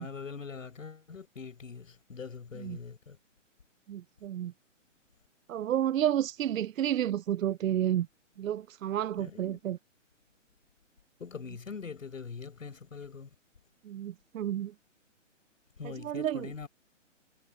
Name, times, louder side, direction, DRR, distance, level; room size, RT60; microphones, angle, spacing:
voice 1, 0.0-3.2 9.2-9.6 11.2-13.3 15.8-16.7, left 5 dB, 85° left, 6.8 m, -43 dB
voice 2, 3.9-4.5 5.5-8.1 8.4-9.8 13.9-14.7 16.0-16.5, right 11 dB, 85° right, 0.5 m, -30 dB
hypercardioid pair, 160°, 38 cm